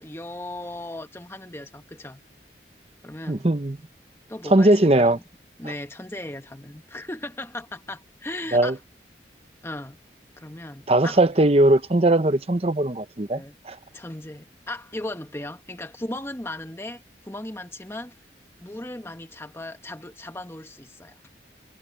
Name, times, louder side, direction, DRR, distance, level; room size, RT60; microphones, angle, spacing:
voice 1, 0.0-2.2 3.0-3.5 4.3-5.2 5.6-8.8 9.6-10.0 10.4-11.2 13.3-13.5 13.9-18.1 18.6-21.1, left 1 dB, 15° left, 1.2 m, -37 dB
voice 2, 3.3-3.8 4.5-5.2 8.5-8.8 10.9-13.8, right 1 dB, 35° right, 0.8 m, -19 dB
head